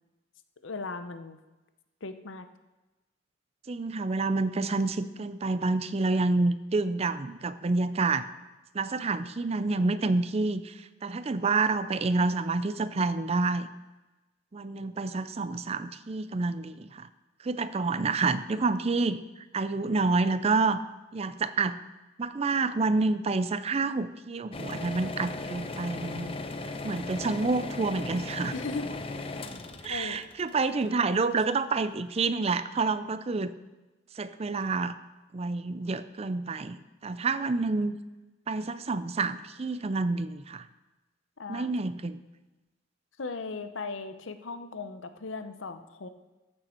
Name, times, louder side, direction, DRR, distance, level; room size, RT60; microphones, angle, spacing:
voice 1, 0.6-1.4 2.0-2.5 14.7-14.8 28.5-28.9 29.2-29.5 29.9-30.2 41.4-41.7 43.2-46.1, left 3 dB, 75° left, 9 dB, 0.8 m, -37 dB
voice 2, 3.7-8.3 8.7-13.7 14.5-17.1 17.4-19.2 19.5-20.8 21.1-21.8 22.2-26.4 26.8-28.5 29.8-33.5 34.2-35.0 35.3-38.0 38.5-40.7 41.5-42.2, right 3 dB, 30° right, 13 dB, 0.4 m, -28 dB
sound 1, 24.5-31.4, left 2 dB, 30° left, 0.7 m, -37 dB
14.5 x 6.6 x 4.4 m, 1.1 s
head